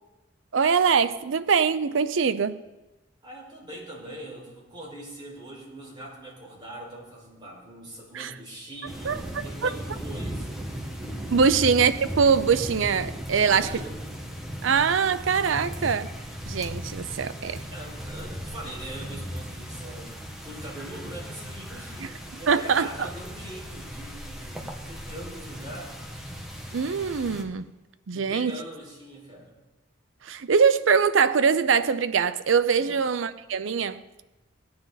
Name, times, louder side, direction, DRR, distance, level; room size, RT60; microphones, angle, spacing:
voice 1, 0.5-2.6 8.1-8.3 9.0-9.2 9.6-9.7 11.3-13.7 14.6-16.1 16.5-17.6 22.0-22.1 22.5-23.1 26.7-27.7 28.1-28.6 30.2-34.2, right 6 dB, 80° right, 0.6 m, -23 dB
voice 2, 3.2-10.7 13.3-14.0 17.7-26.0 28.1-29.6 32.8-33.0, right 1 dB, 25° right, 4.9 m, -42 dB
sound 1, 8.9-27.4, equal, ahead, 1.4 m, -37 dB
18.0 x 9.6 x 4.0 m
head